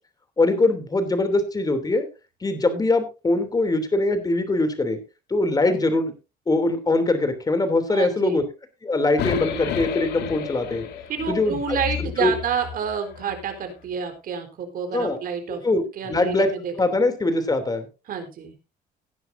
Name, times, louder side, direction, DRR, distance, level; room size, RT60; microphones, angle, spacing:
voice 1, 0.4-2.1 2.4-5.0 5.3-6.1 6.5-8.4 8.8-10.8 11.3-11.8 12.2-12.3 14.9-15.2 15.6-15.8 16.1-16.5 16.7-17.9, left 2 dB, 20° left, 9 dB, 3.1 m, -22 dB
voice 2, 7.9-8.4 11.1-15.6 16.0-17.0 18.1-18.5, right 7 dB, 60° right, 5 dB, 4.1 m, -29 dB
sound 1, 9.2-13.4, left 9 dB, 80° left, 2.2 m, -32 dB
18.0 x 10.5 x 2.7 m, 0.30 s
cardioid pair, 110°, 17 cm